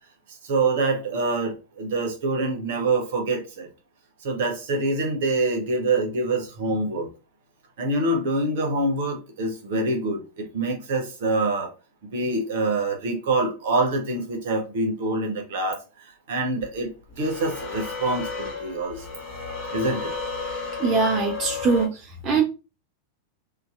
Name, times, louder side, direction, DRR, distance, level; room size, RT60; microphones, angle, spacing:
voice 1, 0.4-3.7 4.2-7.1 7.8-11.7 12.1-16.9 17.2-19.2 19.7-20.1 21.9-22.0, right 2 dB, 55° right, 0.7 m, -25 dB
sound 1, 16.6-16.7 17.2-21.9, left 4 dB, 45° left, 1.1 m, -33 dB
voice 2, 20.8-22.4, right 4 dB, 30° right, 0.4 m, -22 dB
2.6 x 2.2 x 2.3 m
figure-of-eight pair, 90°, 0 cm